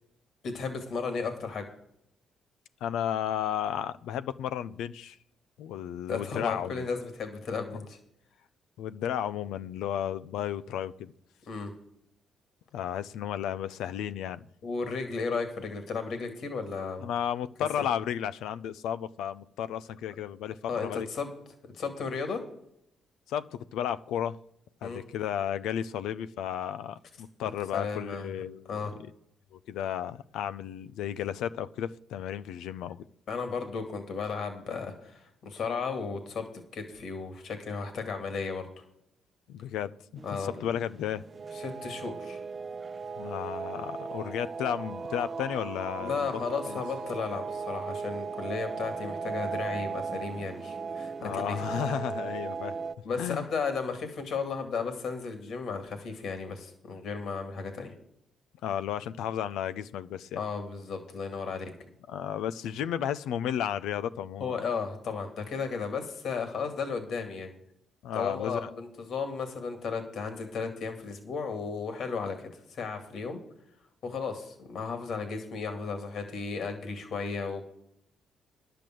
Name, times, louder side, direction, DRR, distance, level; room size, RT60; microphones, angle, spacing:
voice 1, 0.4-1.7 6.1-8.0 11.5-11.7 14.6-17.1 17.8-17.9 20.7-21.3 21.7-22.4 24.8-25.0 27.7-28.3 28.7-28.9 33.3-36.4 36.7-38.7 40.2-40.7 41.5-42.4 46.0-51.6 53.0-57.9 60.4-61.7 64.4-67.5 68.1-73.4 74.0-77.7, left 5 dB, 65° left, 7 dB, 2.2 m, -34 dB
voice 2, 2.8-5.2 5.6-6.9 8.8-11.1 12.7-14.5 17.0-21.1 23.3-24.4 24.8-28.9 29.5-33.1 39.5-39.9 40.3-41.2 43.2-46.3 46.7-46.8 51.2-52.8 53.2-53.5 58.6-60.4 62.1-64.6 68.0-68.7, left 10 dB, 85° left, 14 dB, 0.5 m, -33 dB
sound 1, 40.2-53.0, right 5 dB, 35° right, 0.8 m, -37 dB
10.5 x 6.8 x 7.6 m, 0.76 s
cardioid pair, 90°, 0 cm